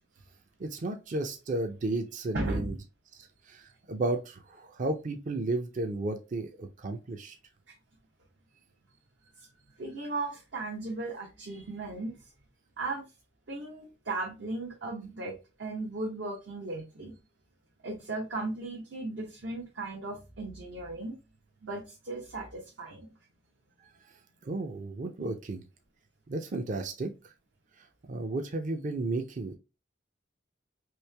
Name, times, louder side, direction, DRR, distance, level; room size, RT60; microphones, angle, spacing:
voice 1, 0.6-2.8 3.5-7.4 24.4-25.6 26.3-27.3 27.8-29.5, right 2 dB, 45° right, 0.5 m, -33 dB
voice 2, 2.3-2.7 9.4-9.5 9.8-12.3 12.8-13.1 13.5-17.2 17.8-21.2 21.6-23.1, right 2 dB, 75° right, 0.9 m, -36 dB
3.1 x 2.8 x 3.3 m
head